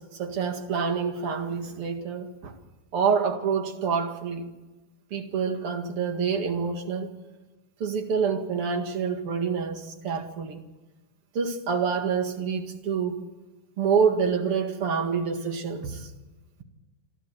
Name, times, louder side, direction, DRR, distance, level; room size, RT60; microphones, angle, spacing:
voice 1, 0.0-2.5 2.9-4.4 5.1-7.1 7.8-10.6 11.3-13.2 13.8-16.1, right 6 dB, 45° right, 5 dB, 2.3 m, -27 dB
28.5 x 12.0 x 7.9 m, 1.2 s
omnidirectional pair, 4.5 m